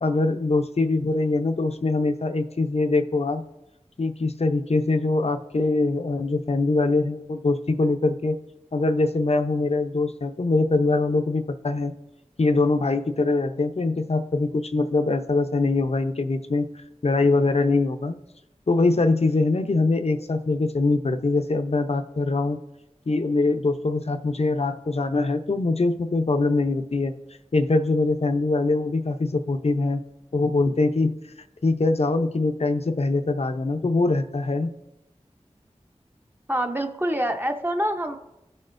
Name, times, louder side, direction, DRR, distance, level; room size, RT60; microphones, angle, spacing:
voice 1, 0.0-3.4 4.0-8.4 8.7-11.9 12.4-16.7 17.0-18.2 18.7-22.6 23.1-27.1 27.5-30.0 30.3-31.1 31.6-34.7, left 3 dB, 60° left, 7 dB, 0.7 m, -23 dB
voice 2, 36.5-38.2, right 1 dB, 15° right, 4 dB, 0.7 m, -26 dB
17.0 x 6.5 x 2.6 m, 0.92 s
wide cardioid pair, 60°, 12 cm